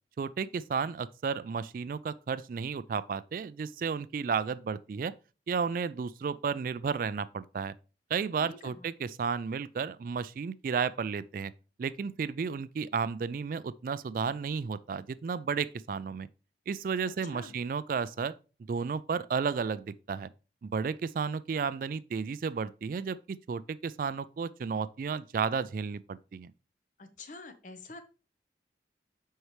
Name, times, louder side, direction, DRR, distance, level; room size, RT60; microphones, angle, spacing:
voice 1, 0.2-5.1 5.5-7.7 8.1-11.5 11.8-16.3 16.7-18.3 18.7-20.3 20.6-23.2 23.5-26.5, right 5 dB, 50° right, 0.3 m, -33 dB
voice 2, 8.4-8.9 17.1-17.6 27.0-28.0, left 3 dB, 45° left, 0.9 m, -47 dB
7.8 x 5.5 x 3.2 m
head